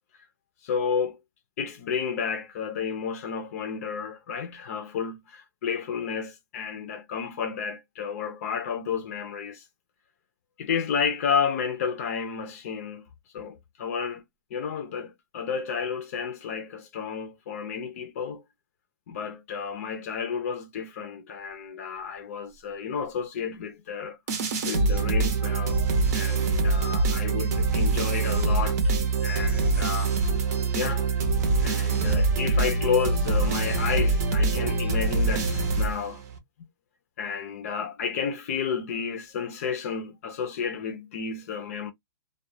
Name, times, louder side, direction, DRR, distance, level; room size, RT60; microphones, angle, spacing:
voice 1, 0.6-1.2 1.6-9.7 10.6-13.1 13.3-14.2 14.5-18.4 19.1-24.2 24.6-28.8 29.2-30.1 30.5-31.1 31.6-36.2 37.2-41.9, left 6 dB, 40° left, 0.5 m, -31 dB
sound 1, 24.3-36.4, right 3 dB, 45° right, 0.7 m, -24 dB
2.2 x 2.2 x 2.6 m
hypercardioid pair, 160°, 12 cm